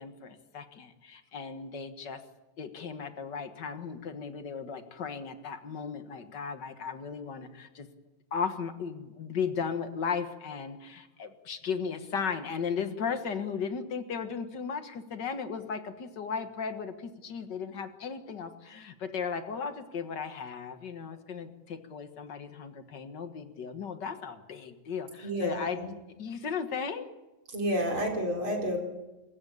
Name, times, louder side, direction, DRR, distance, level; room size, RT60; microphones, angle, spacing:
voice 1, 0.0-2.2 2.6-7.9 8.3-25.8 26.2-27.1, left 6 dB, 45° left, 9 dB, 1.6 m, -36 dB
voice 2, 25.2-25.9 27.5-28.8, equal, 40° right, 1 dB, 4.9 m, -30 dB
27.0 x 15.0 x 8.7 m, 1.1 s
omnidirectional pair, 3.6 m